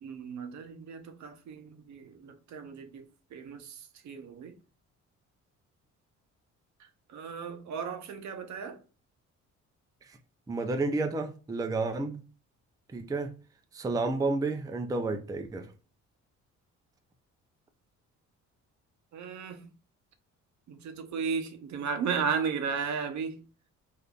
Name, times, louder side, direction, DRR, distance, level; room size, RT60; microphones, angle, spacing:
voice 1, 0.0-3.0 3.3-4.6 7.1-8.8 19.1-19.7 20.7-23.4, right 6 dB, 65° right, 0.7 m, -35 dB
voice 2, 10.5-12.2 12.9-13.3 13.7-15.7, right 3 dB, 10° right, 0.4 m, -31 dB
3.7 x 2.6 x 2.3 m
cardioid pair, 90°, 30 cm